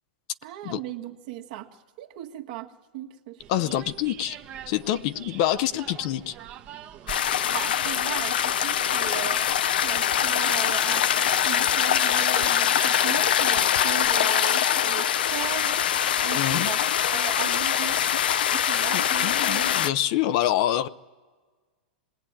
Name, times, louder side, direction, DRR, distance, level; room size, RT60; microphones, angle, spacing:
voice 1, 0.4-3.7 7.5-9.5 9.8-11.1 11.4-15.8 16.2-18.0 18.5-19.8, right 14 dB, 55° right, 1.7 m, -37 dB
sound 1, 3.4-14.2, right 10 dB, 30° right, 1.1 m, -44 dB
voice 2, 3.5-4.4 4.7-6.3 16.3-16.7 18.9-20.9, left 12 dB, 45° left, 0.7 m, -26 dB
sound 2, 7.1-19.9, left 10 dB, 85° left, 0.7 m, -23 dB
26.0 x 20.5 x 8.9 m
supercardioid pair, 150°, 5 cm